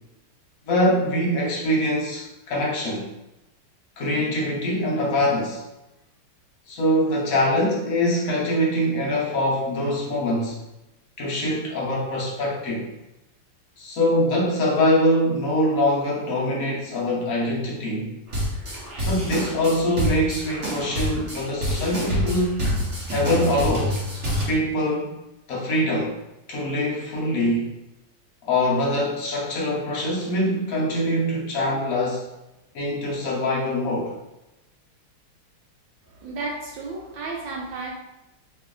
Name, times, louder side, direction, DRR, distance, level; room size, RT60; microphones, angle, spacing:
voice 1, 0.7-3.1 4.0-5.6 6.7-10.6 11.2-12.9 13.8-18.2 19.0-22.6 23.1-24.0 24.5-25.2 25.5-26.2 26.5-27.7 28.4-32.3 32.7-34.2, left 1 dB, 60° left, -4 dB, 0.9 m, -23 dB
sound 1, 18.3-24.4, equal, 40° right, 1.1 m, -27 dB
voice 2, 36.1-37.9, right 3 dB, 70° right, -1 dB, 1.2 m, -33 dB
3.2 x 3.0 x 3.6 m, 0.96 s
omnidirectional pair, 2.4 m